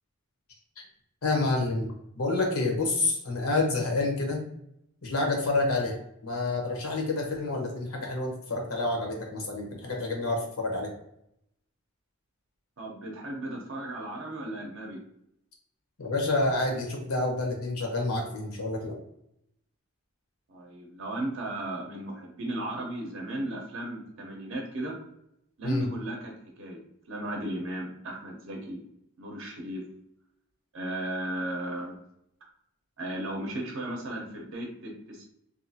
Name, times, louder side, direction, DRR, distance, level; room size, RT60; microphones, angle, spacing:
voice 1, 1.2-1.9 2.2-4.4 5.0-5.9 6.2-10.9 16.0-19.0 25.6-25.8, left 2 dB, 80° left, 1 dB, 0.8 m, -28 dB
voice 2, 12.8-15.0 20.5-25.0 25.6-26.8 27.1-28.8 29.2-29.8 30.7-31.9 33.0-35.3, right 1 dB, 60° right, 0 dB, 0.6 m, -35 dB
2.7 x 2.3 x 2.7 m, 0.76 s
head